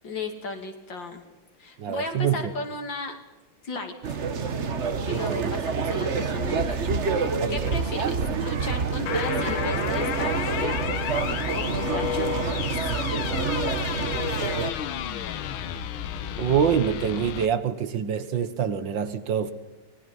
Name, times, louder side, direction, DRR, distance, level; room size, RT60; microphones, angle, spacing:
voice 1, 0.0-1.2 1.6-3.2 3.6-3.9 5.0-6.8 7.2-10.7 11.5-12.8, left 3 dB, 65° left, 3.3 m, -35 dB
voice 2, 1.8-2.5 5.1-5.6 7.4-7.7 16.4-19.5, right 8 dB, 70° right, 1.9 m, -26 dB
sound 1, 4.0-14.7, right 5 dB, 40° right, 1.3 m, -27 dB
sound 2, 9.1-17.5, left 10 dB, 90° left, 1.8 m, -31 dB
25.0 x 20.0 x 5.5 m
omnidirectional pair, 2.2 m